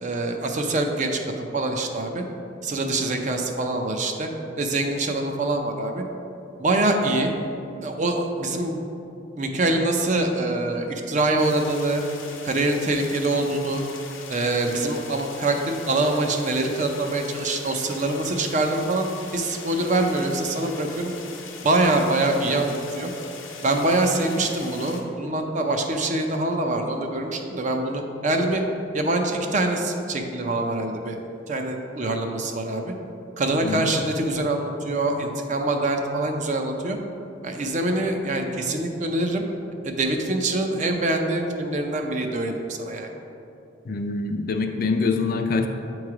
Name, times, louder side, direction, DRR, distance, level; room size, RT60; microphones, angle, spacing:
voice 1, 0.0-2.2 2.6-4.3 4.6-6.0 6.6-7.3 7.8-8.8 9.4-12.0 12.4-13.8 14.3-19.1 19.3-21.1 21.6-23.1 23.6-28.6 28.9-31.2 31.5-32.9 33.4-37.0 37.4-39.4 39.8-43.1, right 2 dB, 40° right, 4 dB, 0.5 m, -24 dB
sound 1, 11.4-25.0, left 5 dB, 80° left, 0.8 m, -41 dB
voice 2, 43.9-45.7, left 4 dB, 50° left, 5 dB, 0.4 m, -25 dB
8.3 x 3.1 x 4.8 m, 2.8 s
head